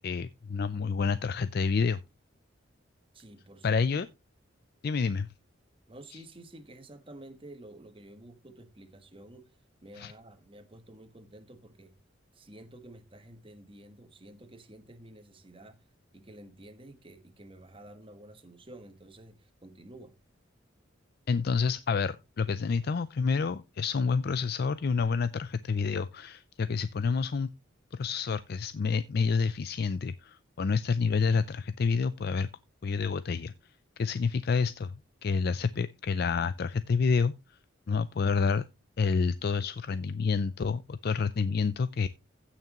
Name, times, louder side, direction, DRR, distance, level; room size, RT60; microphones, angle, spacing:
voice 1, 0.0-2.0 3.6-4.1 4.8-5.3 10.0-10.1 21.3-27.5 27.9-32.5 32.8-33.5 34.0-34.9 35.2-37.3 37.9-38.6 39.0-42.1, left 5 dB, 50° left, 0.4 m, -28 dB
voice 2, 3.1-3.8 5.9-11.9 12.3-15.8 16.1-20.2, right 1 dB, 25° right, 1.3 m, -51 dB
16.0 x 5.9 x 3.0 m
head